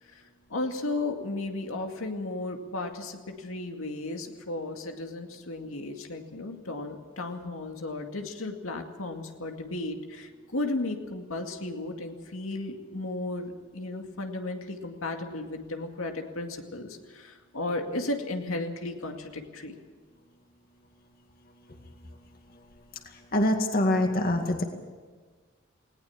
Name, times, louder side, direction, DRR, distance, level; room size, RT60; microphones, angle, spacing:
voice 1, 0.0-19.8, left 2 dB, 85° left, 4 dB, 2.3 m, -34 dB
voice 2, 23.3-24.6, left 1 dB, 45° left, 4 dB, 2.2 m, -24 dB
19.5 x 18.5 x 7.3 m, 1.5 s
head